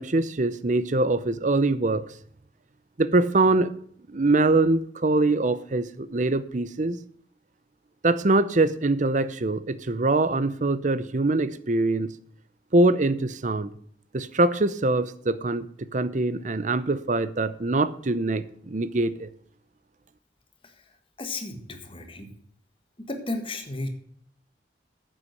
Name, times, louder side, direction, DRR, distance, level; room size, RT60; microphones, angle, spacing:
voice 1, 0.0-2.0 3.0-3.7 4.1-7.0 8.0-12.1 12.7-13.7 14.1-15.7 15.9-19.3, right 2 dB, 45° right, 0.7 m, -23 dB
voice 2, 21.2-22.3 23.1-23.9, left 2 dB, 30° left, 1.6 m, -33 dB
9.7 x 8.0 x 6.3 m
head